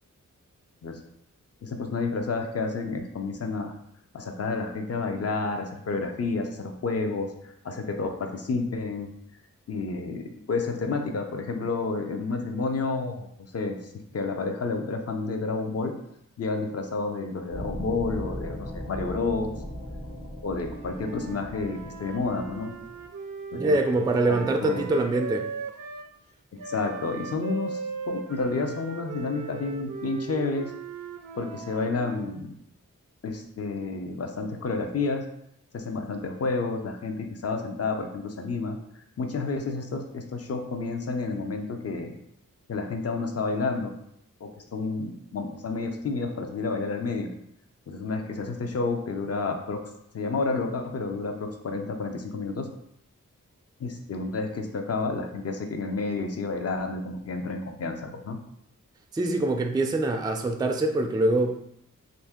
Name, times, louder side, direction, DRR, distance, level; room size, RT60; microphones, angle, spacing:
voice 1, 1.6-3.7 4.1-9.1 9.7-13.3 13.5-15.9 16.4-19.5 20.4-22.7 23.5-23.8 24.3-24.8 26.6-27.8 28.1-30.7 31.4-32.5 33.2-35.2 35.7-38.8 39.2-42.1 42.7-43.9 44.4-47.3 47.9-49.8 50.1-52.7 53.8-58.4, left 3 dB, 50° left, 4 dB, 0.5 m, -30 dB
sound 1, 17.5-23.1, left 1 dB, 70° left, 1.0 m, -38 dB
Wind instrument woodwind instrument, 20.6-26.1 26.6-32.4, right 5 dB, 75° right, 0.5 m, -38 dB
voice 2, 23.5-25.5 59.1-61.6, right 2 dB, 15° right, 5 dB, 0.3 m, -24 dB
2.7 x 2.6 x 3.5 m, 0.74 s
cardioid pair, 55°, 32 cm